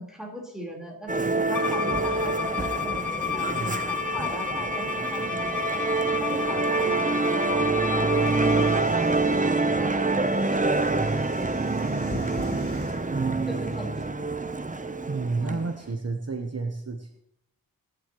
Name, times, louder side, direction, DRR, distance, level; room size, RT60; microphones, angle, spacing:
voice 1, 0.0-5.6 6.2-10.9 13.5-14.1 15.4-15.6, equal, ahead, -1 dB, 4.4 m, -39 dB
Musical instrument, 1.1-15.8, right 3 dB, 20° right, 0.8 m, -26 dB
Bowed string instrument, 1.5-8.8, left 9 dB, 60° left, 0.7 m, -32 dB
voice 2, 3.5-3.9 13.1-13.4 15.1-17.2, right 4 dB, 40° right, 4 dB, 1.1 m, -31 dB
sound 1, 8.2-13.6, left 2 dB, 35° left, 4.6 m, -43 dB
22.5 x 11.0 x 3.1 m, 0.79 s
wide cardioid pair, 100°, 37 cm